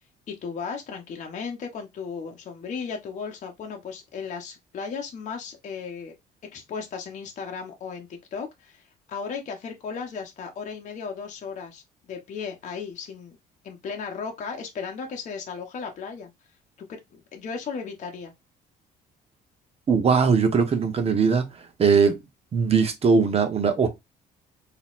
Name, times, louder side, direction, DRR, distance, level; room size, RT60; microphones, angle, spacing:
voice 1, 0.3-6.1 6.5-13.4 13.6-16.3 16.9-18.3, left 5 dB, 45° left, 0.9 m, -35 dB
voice 2, 19.9-21.4 21.8-22.2 22.5-23.9, right 5 dB, 35° right, 0.9 m, -20 dB
3.9 x 2.8 x 2.4 m
cardioid pair, 110°, 17 cm